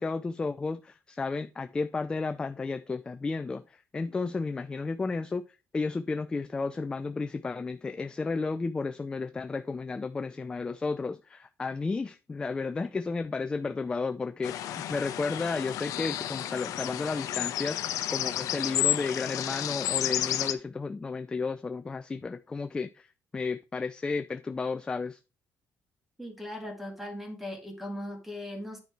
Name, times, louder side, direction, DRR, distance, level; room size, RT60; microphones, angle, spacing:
voice 1, 0.0-5.4 5.7-23.1 23.3-25.2, left 4 dB, 15° left, 0.3 m, -33 dB
sound 1, 14.4-20.5, left 12 dB, 75° left, 0.8 m, -31 dB
voice 2, 26.2-28.8, left 1 dB, 5° right, 2.0 m, -38 dB
9.5 x 4.4 x 4.6 m
cardioid pair, 160°, 6 cm